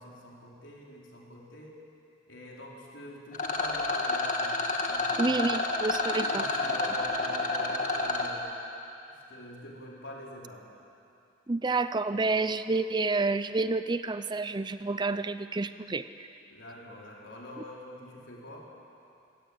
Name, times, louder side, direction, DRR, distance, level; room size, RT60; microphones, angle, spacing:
voice 1, 0.0-1.8 2.3-5.4 6.1-8.5 9.1-10.6 16.5-18.7, left 1 dB, 70° left, -3 dB, 4.6 m, -45 dB
Rattle, 3.3-8.3, left 2 dB, 40° left, 2.2 m, -29 dB
voice 2, 5.2-6.4 11.5-16.3, right 3 dB, 20° right, 12 dB, 0.5 m, -29 dB
24.0 x 17.0 x 8.9 m, 2.6 s
head